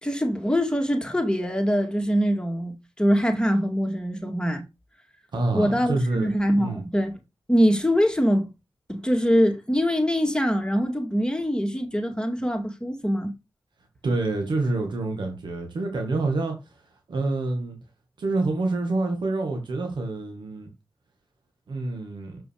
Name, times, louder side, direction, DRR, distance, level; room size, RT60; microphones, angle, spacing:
voice 1, 0.0-4.6 5.5-7.2 7.5-8.5 8.9-13.3, equal, 10° left, 2.2 m, -23 dB
voice 2, 5.3-6.3 6.6-6.8 14.0-16.7 17.1-17.8 18.2-20.7 21.7-22.4, right 2 dB, 90° right, 2.2 m, -27 dB
7.0 x 6.0 x 4.9 m
cardioid pair, 55°, 8 cm